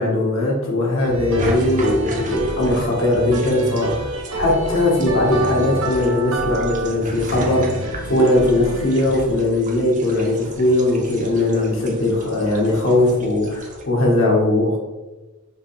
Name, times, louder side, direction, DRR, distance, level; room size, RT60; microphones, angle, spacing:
voice 1, 0.0-14.8, left 1 dB, 70° left, -2 dB, 1.4 m, -19 dB
sound 1, 1.0-9.3, right 1 dB, 90° right, 0.8 m, -28 dB
sound 2, 1.4-13.8, right 2 dB, 40° right, 0.6 m, -36 dB
5.3 x 3.0 x 3.3 m, 1.2 s
head